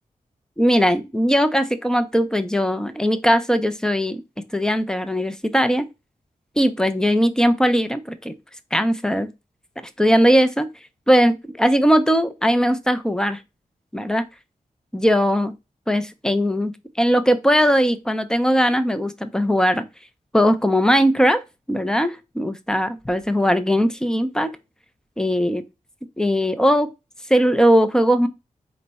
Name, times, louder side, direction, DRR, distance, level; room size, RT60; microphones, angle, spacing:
voice 1, 0.6-4.2 4.5-5.9 6.6-8.3 8.7-9.3 9.8-10.7 11.1-13.4 13.9-14.2 14.9-15.5 15.9-19.9 20.3-21.4 21.7-24.5 25.2-25.6 26.2-26.9 27.3-28.3, equal, 5° left, 0.4 m, -19 dB
4.4 x 2.1 x 3.9 m
wide cardioid pair, 170°, 14 cm